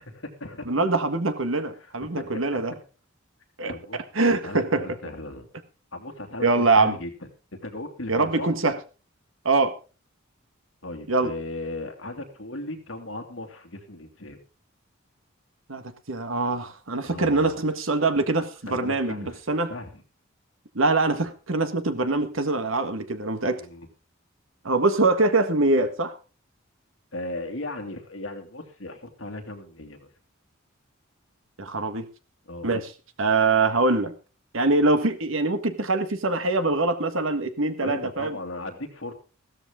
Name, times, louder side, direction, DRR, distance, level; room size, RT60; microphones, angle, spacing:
voice 1, 0.0-0.7 1.8-2.7 3.7-4.0 4.2-5.5 5.9-8.5 10.8-14.4 17.0-17.6 18.7-19.4 19.7-20.0 23.6-23.9 27.1-30.1 32.5-32.7 37.8-39.1, left 2 dB, 65° left, 5 dB, 2.7 m, -37 dB
voice 2, 0.7-2.7 3.6-3.7 4.1-4.8 6.4-7.0 8.1-8.7 9.4-9.7 11.1-11.3 15.7-19.7 20.7-23.6 24.6-26.1 31.6-32.1 32.6-32.9 33.2-34.1 34.5-38.4, right 3 dB, 70° right, 10 dB, 1.7 m, -23 dB
15.5 x 13.0 x 3.8 m, 0.35 s
head